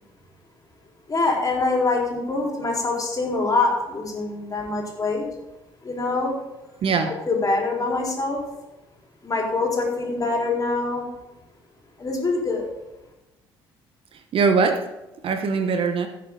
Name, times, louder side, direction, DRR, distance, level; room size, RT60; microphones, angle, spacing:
voice 1, 1.1-5.2 5.8-6.3 7.1-8.4 9.2-11.1 12.0-12.7, left 3 dB, 30° left, -1 dB, 4.3 m, -24 dB
voice 2, 6.8-7.1 14.1-14.9 15.2-16.1, right 5 dB, 50° right, 7 dB, 1.1 m, -21 dB
16.5 x 6.8 x 3.9 m, 0.99 s
figure-of-eight pair, 50°, 12 cm